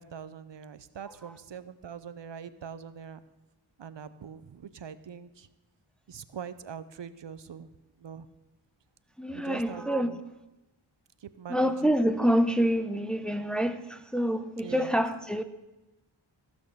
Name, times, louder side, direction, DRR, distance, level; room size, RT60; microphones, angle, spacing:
voice 1, 0.0-3.2 3.8-5.5 6.1-7.7 8.0-8.3 9.3-10.2 11.2-11.9 14.6-15.0, right 7 dB, 65° right, 0.7 m, -43 dB
voice 2, 9.2-10.2 11.5-15.4, equal, ahead, 0.7 m, -27 dB
15.5 x 6.4 x 6.7 m
wide cardioid pair, 65°, 48 cm